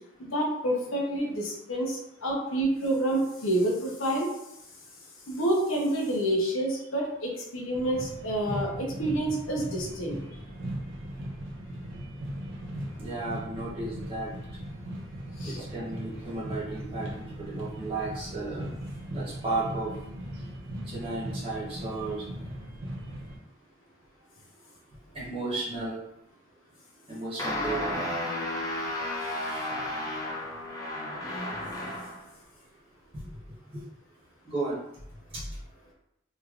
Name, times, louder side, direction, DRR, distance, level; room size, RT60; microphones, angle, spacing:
voice 1, 0.2-4.3 5.3-10.2 15.4-15.6, right 1 dB, 90° left, -2 dB, 0.9 m, -28 dB
sound 1, 7.7-23.4, equal, 75° right, 0.8 m, -38 dB
voice 2, 13.0-14.3 15.4-18.7 19.1-19.9 20.3-20.4 20.8-22.3 25.1-26.0 27.1-28.0 33.1-33.3 33.7-33.8 34.4-34.8 35.3-35.5, right 3 dB, 25° right, -7 dB, 1.0 m, -34 dB
sound 2, 27.4-32.2, left 1 dB, 15° left, 0.5 m, -33 dB
3.2 x 2.9 x 2.4 m, 0.81 s
head